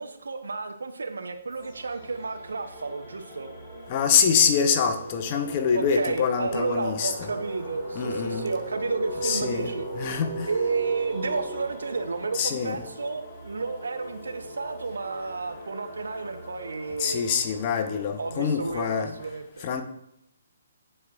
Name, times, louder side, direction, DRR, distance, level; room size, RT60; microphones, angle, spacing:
voice 1, 0.0-3.5 5.7-9.9 10.5-17.3 18.2-19.7, right 4 dB, 65° right, 8 dB, 0.7 m, -31 dB
sound 1, 1.5-19.3, equal, 10° left, 2.4 m, -45 dB
sound 2, 1.5-1.8 2.1-13.6, right 1 dB, 30° right, 1.4 m, -38 dB
voice 2, 3.9-7.3 7.9-8.5 9.2-10.5 12.3-12.8 17.0-19.1 19.6-19.8, left 7 dB, 35° left, 7 dB, 0.7 m, -25 dB
9.6 x 4.4 x 2.4 m, 0.76 s
figure-of-eight pair, 130°, 0 cm